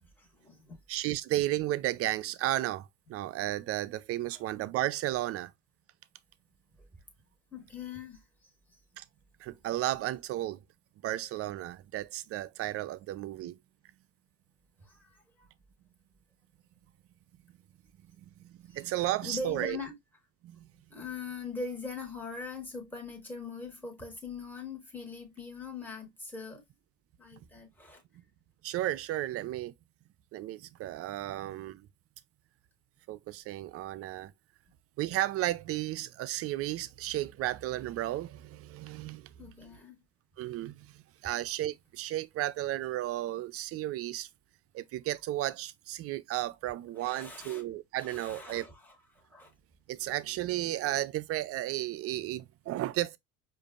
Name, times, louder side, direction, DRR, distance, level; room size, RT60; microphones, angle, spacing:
voice 1, 0.2-0.8 4.3-4.4 6.8-6.9 7.5-8.2 8.7-8.8 9.5-9.6 14.8-15.5 18.7-20.0 20.9-26.6 27.2-28.0 39.4-40.0 47.0-47.6 48.0-49.5, left 3 dB, 5° left, 1.6 m, -42 dB
voice 2, 0.9-5.5 9.0-9.1 9.4-10.6 11.0-13.6 18.4-19.8 20.4-20.7 28.6-29.7 30.3-31.9 33.1-34.3 35.0-39.3 40.4-44.3 44.7-48.7 49.9-53.2, right 15 dB, 45° right, 0.4 m, -33 dB
4.9 x 2.5 x 2.4 m
hypercardioid pair, 80°, 32 cm